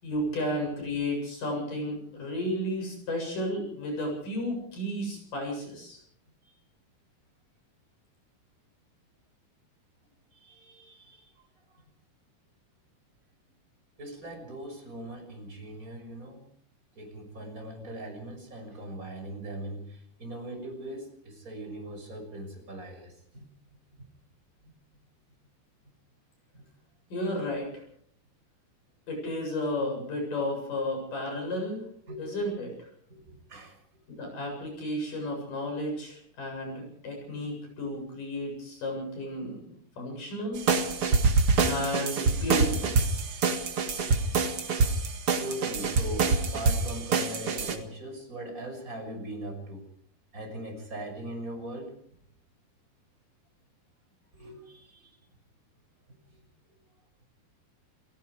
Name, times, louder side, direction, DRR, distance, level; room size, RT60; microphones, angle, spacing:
voice 1, 0.0-6.0 27.1-27.7 29.1-31.8 32.2-32.7 34.1-39.6 40.0-40.6 41.6-43.0, left 1 dB, 50° left, 2 dB, 9.2 m, -33 dB
voice 2, 10.3-11.5 14.0-16.4 17.0-23.4 26.5-26.6 32.1-32.2 33.1-33.8 45.4-49.8 50.3-51.9 54.3-55.1 56.3-56.4, right 1 dB, 20° right, 3 dB, 6.4 m, -40 dB
sound 1, 40.6-47.8, right 4 dB, 45° right, 2.0 m, -25 dB
30.0 x 17.5 x 5.0 m, 0.62 s
omnidirectional pair, 4.8 m